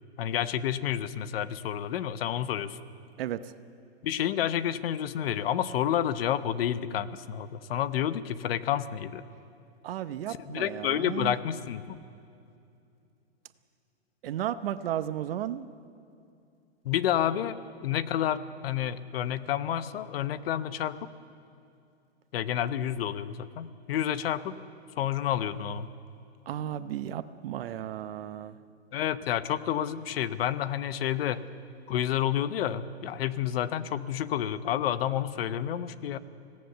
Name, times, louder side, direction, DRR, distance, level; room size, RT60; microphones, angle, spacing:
voice 1, 0.2-2.8 4.0-9.2 10.3-12.0 16.8-18.4 18.6-21.0 22.3-24.6 25.0-25.9 28.9-31.4 31.9-36.2, left 10 dB, 60° left, 13 dB, 1.1 m, -29 dB
voice 2, 9.8-11.3 14.2-15.7 26.5-28.5, right 11 dB, 55° right, 12 dB, 0.9 m, -34 dB
25.5 x 17.5 x 6.8 m, 2.5 s
hypercardioid pair, 130°, 34 cm